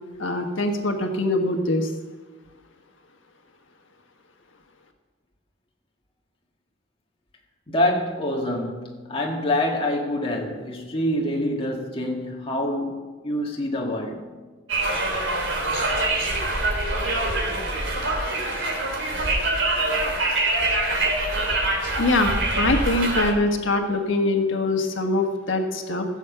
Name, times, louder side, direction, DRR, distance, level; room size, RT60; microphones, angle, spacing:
voice 1, 0.2-1.9 22.0-26.1, left 2 dB, 90° left, 1.4 m, -23 dB
voice 2, 7.7-14.2, left 1 dB, 30° left, 2.0 m, -26 dB
Conversation, 14.7-23.3, right 2 dB, 80° right, 3.3 m, -24 dB
16.0 x 7.4 x 6.9 m
head